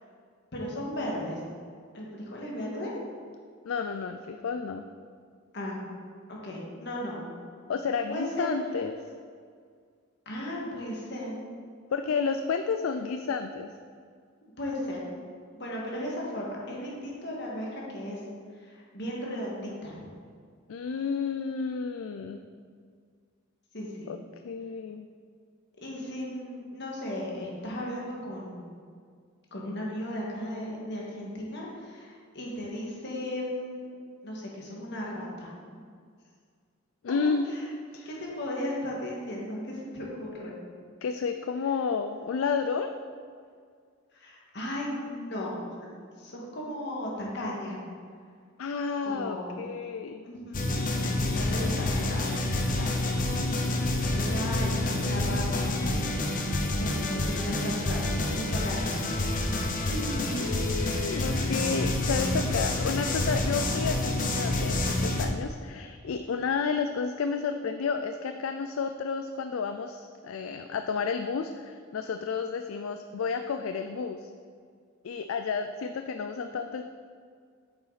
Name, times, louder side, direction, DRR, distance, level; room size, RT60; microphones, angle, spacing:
voice 1, 0.5-1.4 1.9-2.9 5.5-5.8 6.3-7.2 8.1-8.5 10.3-11.4 14.6-15.1 15.6-18.2 18.6-19.9 23.7-24.1 25.8-28.6 29.5-33.8 34.2-35.5 37.5-37.7 38.1-40.6 44.1-45.6 45.8-47.8 49.0-49.6 50.2-50.7 51.1-52.3 52.7-53.1 54.0-56.0 56.4-56.5 56.8-59.0 59.9-60.5, left 1 dB, 55° left, -3 dB, 1.9 m, -36 dB
voice 2, 3.6-4.9 7.7-9.0 11.9-13.7 20.7-22.5 24.1-24.2 24.4-25.1 37.0-37.5 37.9-38.1 41.0-43.0 48.6-50.3 60.4-74.3 75.0-76.8, left 5 dB, 85° left, 8 dB, 0.4 m, -31 dB
sound 1, 50.5-65.2, left 2 dB, 40° left, 0.8 m, -28 dB
8.9 x 6.9 x 4.1 m, 2.1 s
head